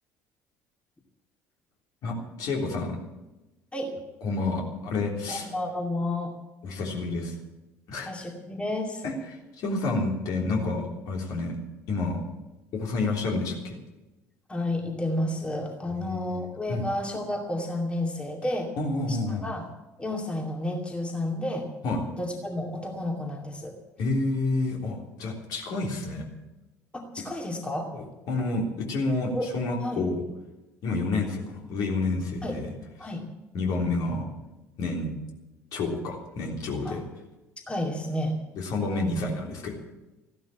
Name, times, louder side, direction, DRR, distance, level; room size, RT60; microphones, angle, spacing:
voice 1, 2.0-3.0 4.2-5.5 6.6-7.4 7.9-8.1 9.0-11.5 11.9-12.2 12.7-13.8 16.7-16.8 18.8-19.4 21.8-22.0 24.0-26.3 27.9-30.2 30.8-32.7 33.5-34.3 34.8-35.1 35.7-37.0 38.6-39.7, left 3 dB, 50° left, 0 dB, 3.5 m, -29 dB
voice 2, 5.3-6.3 8.0-9.0 14.5-18.7 19.1-19.6 20.0-21.7 22.1-23.8 26.9-27.9 29.3-29.5 29.8-30.0 32.4-32.6 33.0-33.3 36.8-37.0 37.7-38.4 38.9-39.2, left 1 dB, 15° left, 1 dB, 2.4 m, -31 dB
15.0 x 12.0 x 7.3 m, 1.0 s
figure-of-eight pair, 60°, 8 cm